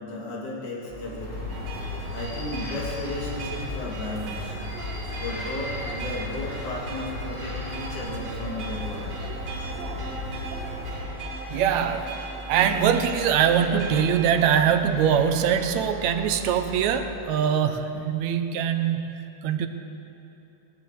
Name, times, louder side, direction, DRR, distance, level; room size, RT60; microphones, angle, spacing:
voice 1, 0.0-1.6 2.1-4.5 5.2-9.2, left 1 dB, 70° left, -3 dB, 4.1 m, -34 dB
sound 1, 0.9-17.1, equal, 15° right, 4.4 m, -41 dB
sound 2, 1.2-11.0, left 2 dB, 55° left, 4.0 m, -36 dB
sound 3, 1.5-14.5, right 3 dB, 55° right, 3.2 m, -39 dB
voice 2, 11.5-12.2 12.5-19.1 19.4-19.7, right 8 dB, 75° right, 8 dB, 1.9 m, -23 dB
17.5 x 9.8 x 7.8 m, 2.9 s
omnidirectional pair, 3.6 m